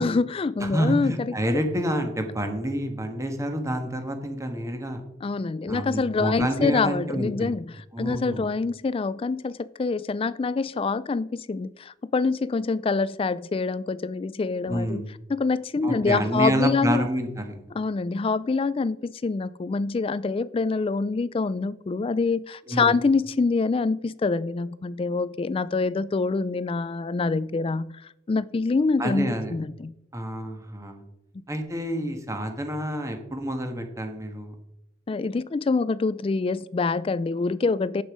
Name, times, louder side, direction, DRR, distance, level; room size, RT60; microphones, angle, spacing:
voice 1, 0.0-1.3 5.2-15.0 15.3-17.1 17.7-27.9 28.3-29.9 35.1-38.0, left 4 dB, 30° left, 0.3 m, -25 dB
voice 2, 0.6-5.0 5.7-7.5 7.9-8.5 14.7-15.1 15.8-17.6 22.7-22.9 29.0-29.5 30.1-31.0 31.5-34.5, equal, 15° right, 1.4 m, -28 dB
9.9 x 7.1 x 4.9 m
head